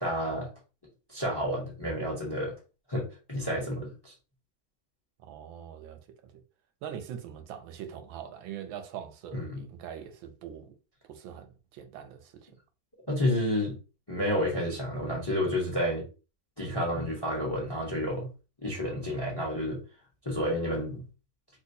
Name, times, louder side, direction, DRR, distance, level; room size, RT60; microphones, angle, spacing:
voice 1, 0.0-0.5 1.1-2.5 2.9-4.1 9.3-9.6 13.1-13.7 14.1-16.0 16.6-18.3 18.6-19.8 20.2-21.0, equal, 20° left, 0.7 m, -30 dB
voice 2, 5.2-6.4 6.8-10.7 11.0-12.5, right 9 dB, 85° right, 1.4 m, -43 dB
3.2 x 3.1 x 2.7 m
omnidirectional pair, 2.1 m